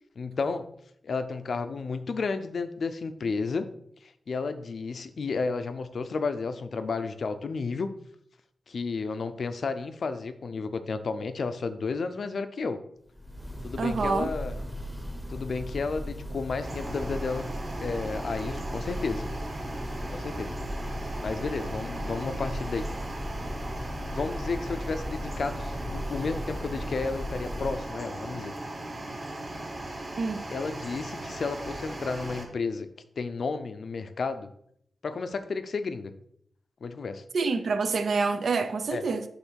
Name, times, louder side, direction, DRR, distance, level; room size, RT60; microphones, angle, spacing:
voice 1, 0.2-0.7 1.0-3.7 4.0-7.9 8.7-12.8 13.6-14.6 15.3-17.5 17.8-19.3 20.1-20.5 21.2-22.9 24.1-28.5 30.5-32.9 33.2-34.5 35.0-36.1 36.8-37.2 38.9-39.0, left 4 dB, 60° left, 0.6 m, -32 dB
Church bell, 13.1-28.0, equal, 5° left, 0.9 m, -37 dB
voice 2, 13.8-14.3 30.2-30.4 37.3-39.2, right 4 dB, 65° right, 0.7 m, -27 dB
sound 1, 16.6-32.4, right 2 dB, 30° right, 1.3 m, -38 dB
7.9 x 3.2 x 6.3 m
wide cardioid pair, 140°, 0 cm